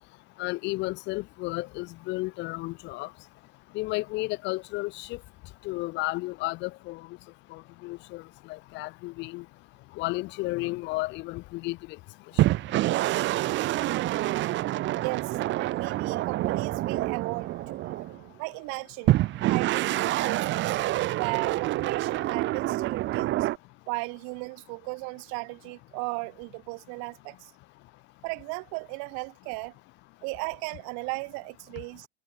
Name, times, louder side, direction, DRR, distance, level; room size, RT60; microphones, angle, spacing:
voice 1, 0.4-3.1 3.7-5.2 5.6-7.0 7.5-8.2 8.5-9.4 10.0-11.8, left 21 dB, 35° left, 0.4 m, -32 dB
sound 1, 12.4-18.3 19.1-23.6, right 16 dB, 35° right, 0.9 m, -27 dB
voice 2, 15.0-17.9 18.4-19.2 19.5-20.8 21.2-23.5 23.9-27.5 28.2-29.7 30.2-32.1, right 36 dB, 55° right, 2.1 m, -36 dB
supercardioid pair, 135°, 35 cm